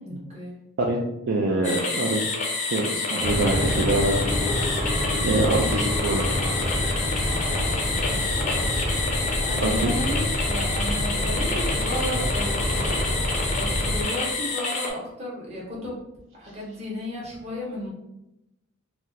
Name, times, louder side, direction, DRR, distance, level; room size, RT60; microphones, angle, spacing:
voice 1, 0.0-0.5 8.1-8.7 9.5-12.9 13.4-16.0 16.3-17.9, left 1 dB, 30° right, -4 dB, 1.0 m, -34 dB
voice 2, 1.3-2.2 2.7-4.2 5.2-6.3 9.6-9.9, right 2 dB, 60° right, -1 dB, 0.4 m, -25 dB
sound 1, 1.6-14.9, left 3 dB, 35° left, 0.4 m, -28 dB
sound 2, 3.2-14.0, equal, 5° right, 0.7 m, -27 dB
2.9 x 2.1 x 3.7 m, 0.89 s
head